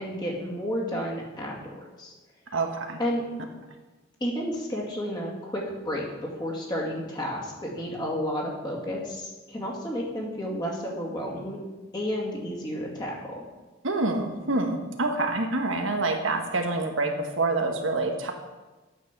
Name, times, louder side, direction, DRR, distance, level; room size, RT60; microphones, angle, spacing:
voice 1, 0.0-1.6 2.0-2.1 3.0-3.2 4.2-6.1 6.4-11.6 11.9-13.4, equal, 20° left, -3 dB, 2.3 m, -31 dB
voice 2, 2.5-3.0 13.8-18.3, right 2 dB, 85° right, 4 dB, 1.3 m, -27 dB
9.2 x 7.4 x 6.0 m, 1.2 s
head